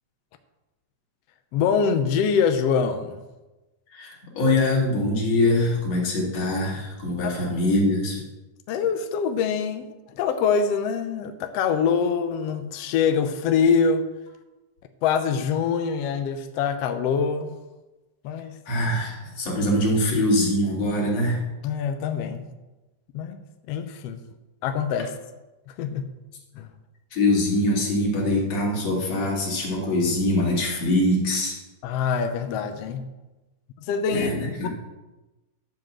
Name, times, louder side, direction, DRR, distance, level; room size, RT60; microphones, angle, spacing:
voice 1, 1.5-3.2 7.2-7.4 8.7-14.1 15.0-17.6 18.2-18.6 21.6-22.5 23.1-23.4 23.7-24.2 24.6-25.1 25.7-26.1 26.6-26.7 31.8-33.1 33.8-34.3 34.6-34.7, left 6 dB, 80° left, 7 dB, 1.4 m, -24 dB
voice 2, 3.9-8.2 18.7-21.4 27.1-31.6 34.1-34.7, left 1 dB, 55° left, -2 dB, 3.4 m, -23 dB
12.0 x 5.1 x 7.4 m, 1.1 s
omnidirectional pair, 3.7 m